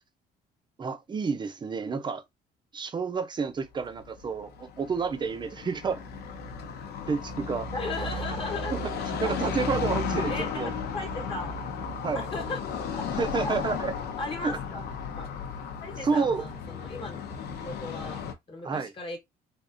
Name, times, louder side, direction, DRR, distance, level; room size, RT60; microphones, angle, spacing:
voice 1, 0.8-2.2 2.7-6.0 7.1-7.7 9.1-10.7 12.0-12.2 13.1-13.9 14.4-14.5 16.0-16.4 18.6-18.9, right 5 dB, 25° right, 0.6 m, -29 dB
Car passing by / Traffic noise roadway noise, 3.6-18.3, left 5 dB, 75° left, 0.8 m, -34 dB
voice 2, 7.7-8.7 10.3-11.6 12.1-12.6 12.9-13.0 14.2-14.8 15.1-15.3 15.8-17.2 17.6-18.2 18.5-19.2, left 2 dB, 30° left, 1.2 m, -37 dB
3.5 x 2.5 x 2.6 m
cardioid pair, 110°, 17 cm